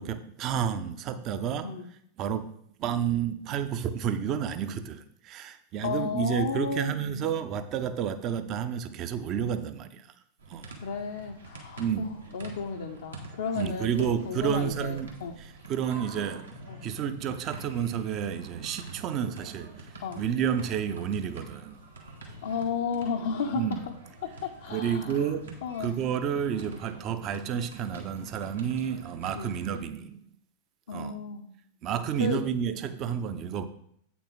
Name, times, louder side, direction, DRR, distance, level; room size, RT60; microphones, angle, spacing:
voice 1, 0.0-1.7 2.2-2.5 2.8-10.1 10.5-10.6 11.8-12.1 13.6-15.1 15.4-21.8 23.5-23.8 24.7-30.2 30.9-31.2 31.8-33.6, right 8 dB, 35° right, 10 dB, 0.6 m, -30 dB
voice 2, 5.8-7.3 10.8-15.4 16.7-16.8 20.0-20.2 22.4-23.9 24.2-25.3 25.6-25.9 29.3-29.5 30.9-31.5 32.2-32.4, left 5 dB, 60° left, 1 dB, 0.6 m, -33 dB
sound 1, 10.4-29.8, right 2 dB, 75° right, 1.7 m, -47 dB
8.3 x 5.9 x 4.0 m, 0.68 s
figure-of-eight pair, 90°, 0 cm